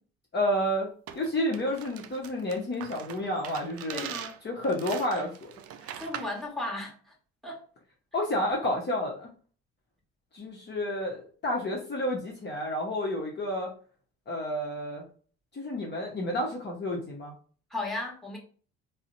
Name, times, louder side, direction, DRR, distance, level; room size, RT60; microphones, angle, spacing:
voice 1, 0.3-0.9 1.1-4.1 4.4-5.5 8.1-9.3 10.3-13.7 14.3-15.0 15.5-17.3, left 1 dB, 30° left, 0.9 m, -30 dB
sound 1, 1.1-6.4, right 9 dB, 45° right, 0.4 m, -42 dB
voice 2, 3.9-4.3 5.8-7.1 7.4-7.6 17.7-18.4, left 2 dB, ahead, 1.4 m, -35 dB
3.8 x 2.1 x 2.6 m
hypercardioid pair, 55°, 34 cm